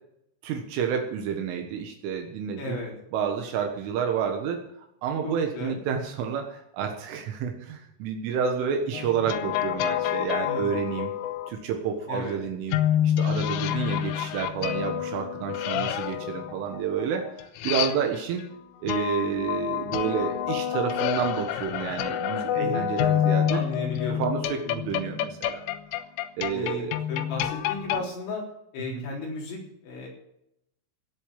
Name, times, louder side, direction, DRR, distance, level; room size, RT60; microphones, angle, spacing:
voice 1, 0.4-2.8 3.1-4.6 5.0-11.1 11.5-12.8 13.0-17.3 17.6-18.5 18.8-23.6 24.2-25.6 26.4-27.0 28.9-29.1, right 7 dB, 75° right, 3 dB, 3.9 m, -29 dB
voice 2, 2.6-2.9 5.2-5.8 10.4-10.9 12.1-12.4 15.7-16.0 22.6-22.9 23.5-24.2 26.5-28.4 28.7-30.1, left 3 dB, 65° left, -2 dB, 6.0 m, -34 dB
sound 1, 8.9-11.5 12.7-18.4 18.9-28.1, left 11 dB, 85° left, 3.3 m, -28 dB
17.5 x 8.3 x 7.6 m, 0.77 s
omnidirectional pair, 5.9 m